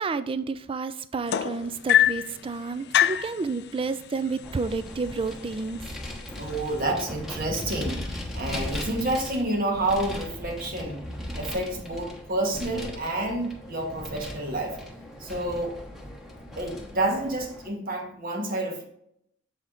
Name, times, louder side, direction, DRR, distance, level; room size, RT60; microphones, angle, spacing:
voice 1, 0.0-5.8, right 4 dB, 30° right, 12 dB, 0.4 m, -30 dB
sound 1, 1.3-2.3 2.9-3.3 4.4-4.5 4.9-5.2 6.0-6.1, left 11 dB, 55° left, 0.3 m, -22 dB
Vehicle, 4.4-17.7, left 1 dB, ahead, 1.1 m, -38 dB
voice 2, 6.4-8.0 8.3-11.0 11.4-14.8 15.2-15.8 16.6-18.9, right 2 dB, 45° right, 1 dB, 1.2 m, -29 dB
7.3 x 4.3 x 3.9 m, 0.73 s
head